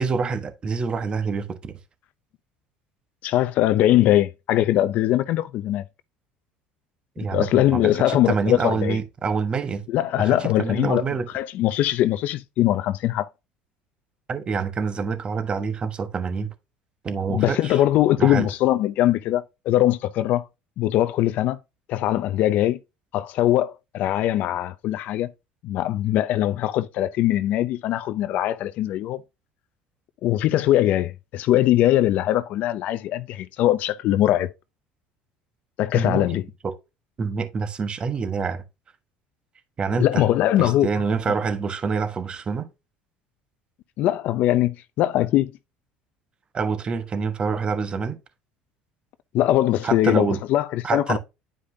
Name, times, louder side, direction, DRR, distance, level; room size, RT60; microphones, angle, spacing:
voice 1, 0.0-1.8 7.2-9.8 10.2-11.3 14.3-16.5 17.0-17.8 18.2-18.5 35.9-36.3 36.6-36.7 37.2-38.6 39.8-40.3 40.6-42.7 46.5-48.2 49.8-50.4 50.8-51.2, right 5 dB, 35° right, 1.2 m, -26 dB
voice 2, 3.2-5.8 7.2-9.0 9.9-11.0 11.3-13.3 17.3-20.4 20.8-21.6 21.9-22.8 23.1-25.3 25.6-29.2 30.2-34.5 35.8-36.4 40.0-40.9 44.0-45.5 49.3-51.2, left 13 dB, 60° left, 0.5 m, -21 dB
9.9 x 5.1 x 2.7 m
supercardioid pair, 100°, 3 cm